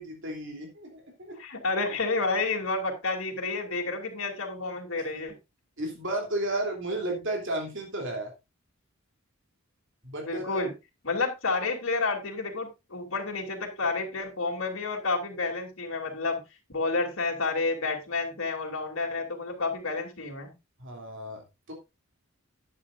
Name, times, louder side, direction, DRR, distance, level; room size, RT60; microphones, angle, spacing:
voice 1, 0.0-1.4 5.8-8.3 10.0-10.6 20.8-21.7, right 1 dB, 60° right, 2 dB, 3.1 m, -33 dB
voice 2, 1.4-5.3 10.2-10.7 11.0-16.4 16.7-20.5, left 3 dB, 70° left, 0 dB, 3.1 m, -30 dB
11.5 x 10.0 x 2.6 m, 0.24 s
head